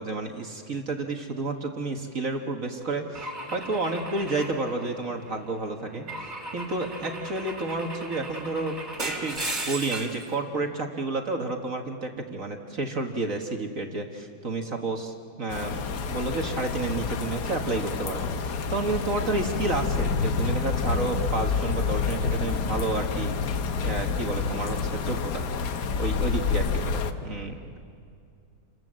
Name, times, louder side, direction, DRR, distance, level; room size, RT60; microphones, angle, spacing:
voice 1, 0.0-6.1 6.5-8.8 9.1-15.8 16.1-23.3 23.8-25.4 26.0-27.8, right 3 dB, 40° right, 3 dB, 1.8 m, -30 dB
Car / Engine / Glass, 3.2-5.4 6.1-10.3, right 1 dB, 20° right, 3.1 m, -36 dB
sound 1, 15.5-27.1, left 5 dB, 60° left, 1.5 m, -28 dB
29.0 x 26.0 x 7.6 m, 2.4 s
omnidirectional pair, 2.3 m